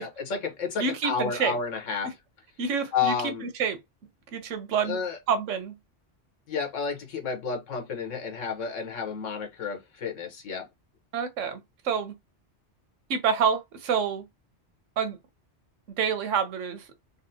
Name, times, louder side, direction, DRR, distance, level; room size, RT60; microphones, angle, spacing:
voice 1, 0.0-2.1 2.9-3.5 4.8-5.2 6.5-10.7, left 5 dB, 90° left, 1.3 m, -31 dB
voice 2, 0.8-1.6 2.6-3.8 4.3-5.0 5.3-5.8 11.1-12.2 13.1-14.3 15.0-15.2 16.0-16.9, right 6 dB, 90° right, 1.1 m, -28 dB
4.0 x 2.1 x 2.6 m
omnidirectional pair, 1.2 m